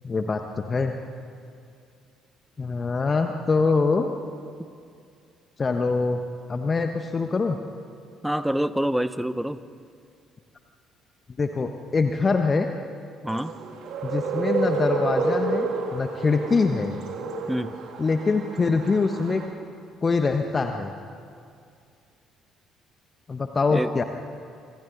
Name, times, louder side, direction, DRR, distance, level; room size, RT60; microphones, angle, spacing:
voice 1, 0.0-1.0 2.6-4.1 5.6-6.2 6.5-7.6 11.4-12.7 14.0-17.0 18.0-19.4 20.0-20.9 23.3-24.0, left 4 dB, 30° left, 6 dB, 1.2 m, -24 dB
voice 2, 8.2-9.6 13.2-13.5 17.5-17.7 23.7-23.9, equal, 5° right, 14 dB, 0.9 m, -26 dB
sound 1, 13.3-19.4, right 4 dB, 60° right, 2.5 m, -30 dB
26.5 x 26.0 x 4.1 m, 2.4 s
figure-of-eight pair, 50°, 0 cm